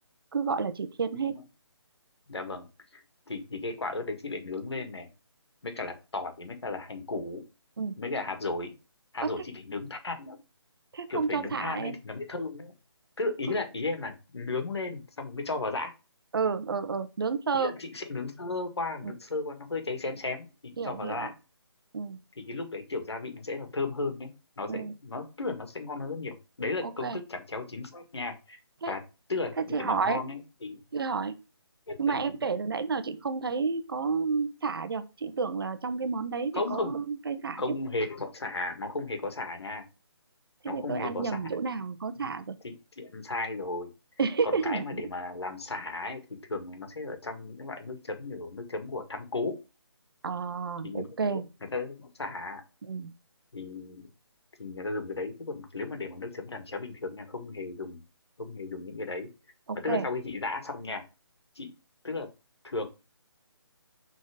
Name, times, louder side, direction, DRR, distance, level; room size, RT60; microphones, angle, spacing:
voice 1, 0.3-1.4 7.8-7.9 9.2-9.4 10.9-12.0 16.3-17.7 19.0-19.1 20.8-21.3 21.9-22.2 24.7-24.9 26.8-27.2 28.8-28.9 29.6-30.2 30.9-31.4 32.0-37.6 40.6-42.6 44.2-45.0 50.2-51.4 52.9-53.1 59.7-60.1, right 5 dB, 55° right, 11 dB, 1.0 m, -30 dB
voice 2, 2.3-2.7 2.9-5.1 5.6-7.4 8.0-8.7 9.1-10.4 11.1-12.7 13.2-15.9 17.5-21.3 22.5-24.3 24.6-28.6 28.9-29.0 29.3-30.8 31.9-32.2 36.5-36.9 37.6-39.9 40.7-41.5 42.6-43.9 44.4-46.2 46.5-49.5 50.8-51.4 51.7-52.6 53.5-54.1 54.6-58.0 58.4-59.3 59.8-61.0 61.6-61.7 62.0-62.3 62.6-62.9, left 3 dB, 70° left, 7 dB, 2.0 m, -35 dB
6.4 x 4.0 x 5.0 m, 0.30 s
figure-of-eight pair, 150°, 14 cm